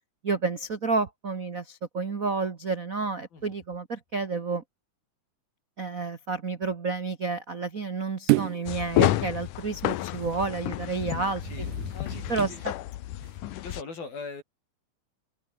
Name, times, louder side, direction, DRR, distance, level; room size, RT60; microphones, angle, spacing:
voice 1, 0.2-4.6 5.8-11.4 12.3-12.5, right 4 dB, 70° right, 0.8 m, -30 dB
sound 1, 8.3-8.8 11.4-12.7 13.2-13.4, right 21 dB, 90° right, 1.7 m, -29 dB
sound 2, 8.7-13.8, left 14 dB, 70° left, 2.4 m, -30 dB
voice 2, 11.1-12.6 13.2-13.3 13.6-14.4, left 4 dB, 90° left, 9.1 m, -42 dB
omnidirectional pair, 4.1 m